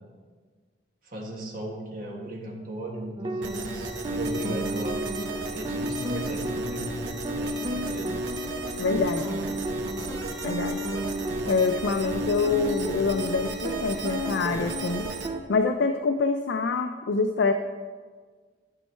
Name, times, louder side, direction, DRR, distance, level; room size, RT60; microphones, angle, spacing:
voice 1, 1.0-8.2, right 1 dB, 50° right, -2 dB, 1.5 m, -37 dB
sound 1, 3.2-15.4, equal, 25° right, 0.5 m, -32 dB
sound 2, 3.4-15.3, right 4 dB, 70° right, 0.8 m, -36 dB
voice 2, 8.8-9.2 10.4-10.8 11.5-15.1 15.5-17.5, left 4 dB, 70° left, 6 dB, 0.4 m, -25 dB
11.5 x 5.4 x 3.3 m, 1.5 s
head